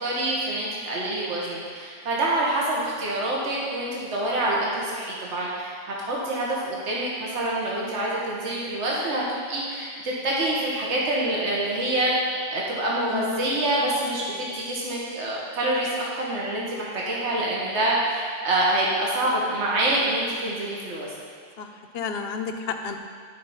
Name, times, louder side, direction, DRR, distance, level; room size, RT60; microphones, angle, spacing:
voice 1, 0.0-12.1 12.5-21.1, right 1 dB, 70° right, -5 dB, 1.5 m, -26 dB
voice 2, 13.1-13.5 21.6-23.0, left 5 dB, 60° left, 5 dB, 0.8 m, -31 dB
11.0 x 4.4 x 5.5 m, 2.1 s
omnidirectional pair, 1.3 m